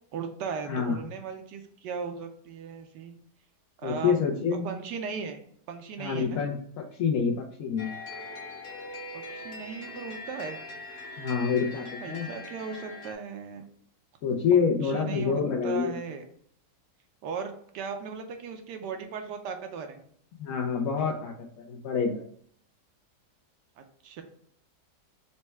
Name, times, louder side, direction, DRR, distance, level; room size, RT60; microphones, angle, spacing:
voice 1, 0.1-3.2 3.8-4.2 4.6-5.4 5.7-6.4 9.1-10.6 12.0-13.6 14.5-16.2 17.2-20.0 23.8-24.2, right 6 dB, 75° right, 5 dB, 1.2 m, -37 dB
voice 2, 0.7-1.0 3.8-4.7 6.0-7.9 11.2-12.3 14.2-16.0 20.4-22.3, left 6 dB, 70° left, -1 dB, 0.9 m, -27 dB
sound 1, 7.8-13.1, left 2 dB, 50° left, 1.1 m, -41 dB
4.2 x 2.2 x 4.4 m, 0.62 s
omnidirectional pair, 1.9 m